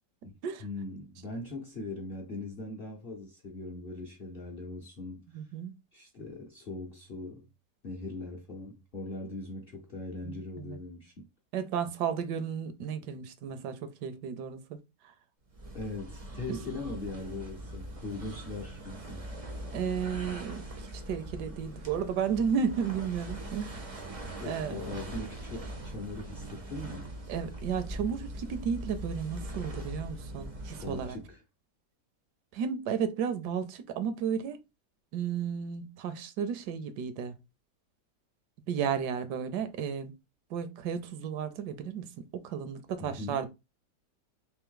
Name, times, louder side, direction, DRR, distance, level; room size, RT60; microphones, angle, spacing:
voice 1, 0.2-5.4 5.9-7.5 7.8-11.3 15.7-19.2 24.4-27.1 30.8-31.4 43.0-43.4, left 2 dB, 55° left, 0.6 m, -40 dB
voice 2, 5.3-5.7 10.2-10.8 11.5-14.8 16.5-16.6 19.7-23.8 24.4-24.7 27.3-31.2 32.5-34.6 35.1-37.3 38.7-40.1 40.5-43.5, right 7 dB, 75° right, 1.2 m, -33 dB
sound 1, 15.5-31.3, right 1 dB, 60° right, 0.3 m, -41 dB
3.5 x 3.0 x 3.6 m
omnidirectional pair, 1.8 m